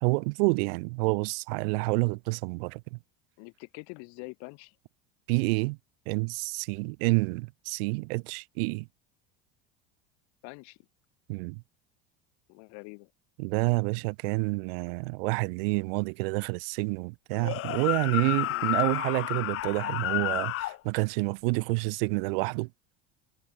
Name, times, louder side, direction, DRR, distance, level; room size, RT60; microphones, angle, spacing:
voice 1, 0.0-3.0 5.3-5.8 6.1-8.9 11.3-11.6 13.4-22.7, right 29 dB, 75° right, 2.0 m, -28 dB
voice 2, 3.4-4.8 10.4-10.8 12.5-13.1 18.5-18.7, left 33 dB, 65° left, 3.6 m, -45 dB
sound 1, 17.4-20.8, left 16 dB, 50° left, 2.9 m, -30 dB
supercardioid pair, 135°, 29 cm